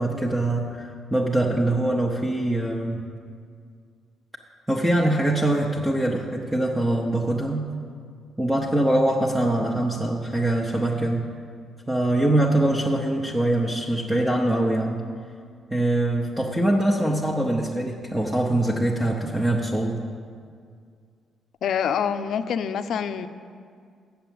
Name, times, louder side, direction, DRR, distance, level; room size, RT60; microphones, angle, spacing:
voice 1, 0.0-3.0 4.7-7.7 8.4-11.3 11.9-15.1 15.7-20.0, right 1 dB, 10° right, -2 dB, 0.8 m, -23 dB
voice 2, 21.6-23.3, left 7 dB, 70° left, 11 dB, 0.4 m, -26 dB
7.7 x 7.0 x 7.6 m, 2.1 s
cardioid pair, 90°, 0 cm